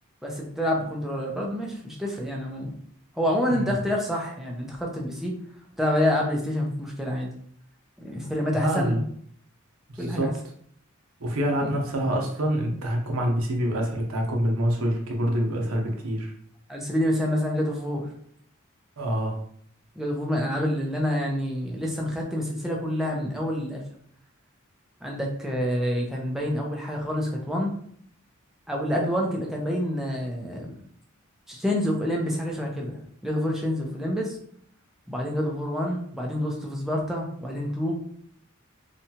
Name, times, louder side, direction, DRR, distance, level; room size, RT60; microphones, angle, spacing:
voice 1, 0.2-2.7 3.2-5.3 5.8-7.3 8.0-9.0 10.0-10.3 11.6-11.8 16.7-18.1 20.0-23.8 25.0-27.7 28.7-30.7 31.5-34.4 35.1-38.0, equal, ahead, -1 dB, 0.5 m, -27 dB
voice 2, 8.5-9.0 9.9-10.3 11.2-16.3 19.0-19.4, equal, 75° right, 1 dB, 0.7 m, -26 dB
2.8 x 2.2 x 2.7 m, 0.64 s
head